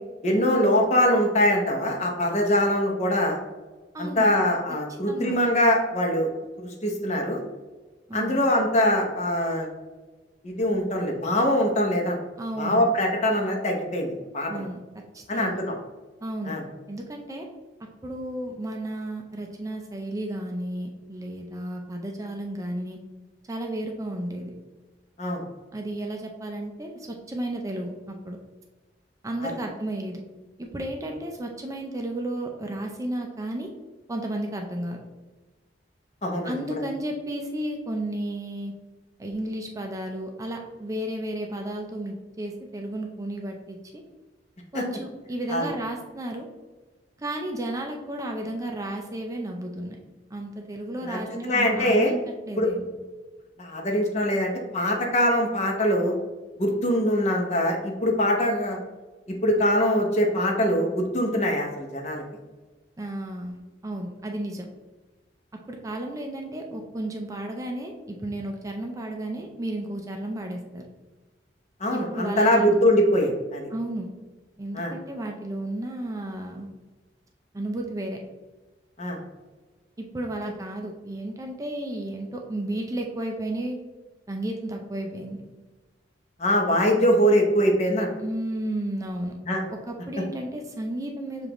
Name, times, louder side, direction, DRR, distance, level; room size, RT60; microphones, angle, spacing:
voice 1, 0.2-3.4 4.0-6.3 6.6-7.4 8.1-9.7 10.4-12.2 12.6-14.7 15.3-15.7 16.4-16.6 25.2-25.4 29.4-29.5 36.2-36.6 44.7-44.8 45.5-45.7 51.0-51.2 51.4-52.1 52.6-52.7 53.6-56.2 56.6-58.8 59.4-62.2 71.8-73.7 74.7-74.9 79.0-79.2 86.4-88.1 89.4-89.6, equal, 40° left, 1 dB, 0.8 m, -23 dB
voice 2, 3.9-4.3 5.1-5.4 8.1-8.4 12.4-12.9 14.5-14.8 15.1-15.6 16.2-16.6 16.9-17.5 18.0-23.0 23.5-24.5 25.7-28.4 29.2-30.2 30.6-33.7 34.1-35.0 36.4-38.7 39.2-44.0 44.7-46.5 47.2-50.0 50.3-52.2 52.5-52.9 63.0-64.7 65.7-70.8 71.9-72.8 73.7-74.1 74.6-76.7 77.5-78.2 80.0-83.8 84.3-85.4 88.2-89.3 89.9-91.5, right 1 dB, 20° right, 1 dB, 0.4 m, -33 dB
6.7 x 2.5 x 3.0 m, 1.2 s
head